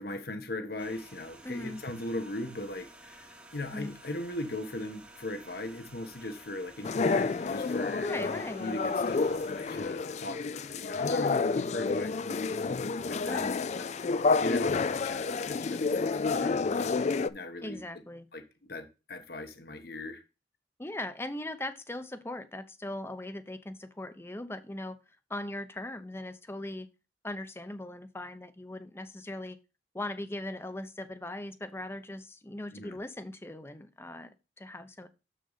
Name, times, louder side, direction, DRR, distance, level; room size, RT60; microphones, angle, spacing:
voice 1, 0.0-8.1 8.6-13.9 14.1-17.0 17.3-17.8 18.3-18.4 18.7-20.2 32.7-33.0, left 1 dB, 60° left, 1.3 m, -39 dB
sound 1, 0.8-9.8, right 1 dB, 5° right, 1.0 m, -53 dB
voice 2, 1.4-1.8 3.7-4.0 8.0-8.8 13.3-13.6 17.6-18.3 20.8-25.0 25.3-26.9 27.2-29.6 29.9-35.1, left 1 dB, 15° left, 0.7 m, -39 dB
sound 2, 6.8-17.3, left 4 dB, 40° left, 0.4 m, -29 dB
6.9 x 6.5 x 4.0 m
head